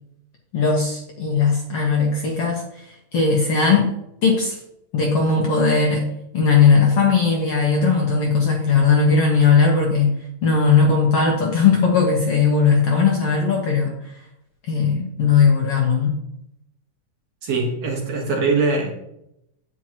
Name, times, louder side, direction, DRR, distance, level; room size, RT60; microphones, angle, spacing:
voice 1, 0.5-4.0 4.2-4.6 4.9-6.1 6.3-10.1 10.4-13.9 14.7-16.2, left 5 dB, 60° left, -1 dB, 1.8 m, -18 dB
voice 2, 17.4-18.9, right 3 dB, 55° right, -1 dB, 2.4 m, -22 dB
9.1 x 8.9 x 3.0 m, 0.80 s
omnidirectional pair, 3.9 m